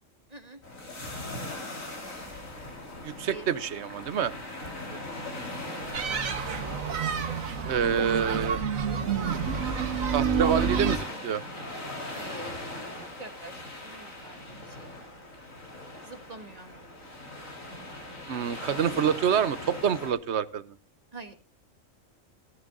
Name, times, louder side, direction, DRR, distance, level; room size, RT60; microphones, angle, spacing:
voice 1, 0.3-0.6 3.2-3.5 4.9-5.5 12.1-14.9 16.0-16.8 21.1-21.3, right 2 dB, 30° right, 5 dB, 1.9 m, -46 dB
sound 1, 0.6-20.1, left 1 dB, 80° left, 4.3 m, -40 dB
voice 2, 3.0-4.3 7.6-8.6 10.1-11.4 18.3-20.7, right 8 dB, 60° right, 17 dB, 1.0 m, -27 dB
sound 2, 5.9-11.0, right 6 dB, 85° right, 1.7 m, -28 dB
17.5 x 14.0 x 2.6 m, 0.33 s
omnidirectional pair, 1.4 m